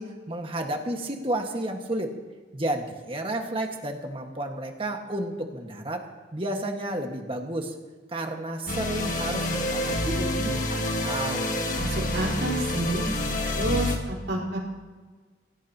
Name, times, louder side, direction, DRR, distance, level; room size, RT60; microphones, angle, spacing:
voice 1, 0.0-2.1 2.5-6.1 6.3-7.7 8.1-11.5, right 1 dB, 30° right, 3 dB, 1.8 m, -31 dB
sound 1, 8.7-14.0, left 1 dB, 45° left, 1.7 m, -28 dB
voice 2, 11.8-13.0 13.5-14.6, right 1 dB, 75° right, -2 dB, 4.8 m, -29 dB
25.5 x 17.0 x 3.0 m, 1.4 s
head